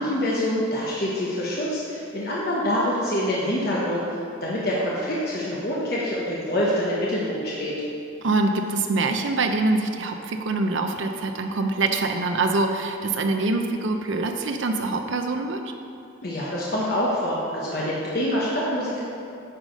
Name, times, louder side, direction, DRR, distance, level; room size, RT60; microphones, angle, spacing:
voice 1, 0.0-4.0 4.4-7.7 16.2-19.0, equal, 50° left, -6 dB, 1.1 m, -25 dB
voice 2, 8.2-15.6, right 3 dB, 70° right, 4 dB, 0.6 m, -24 dB
9.2 x 5.0 x 5.1 m, 2.7 s
head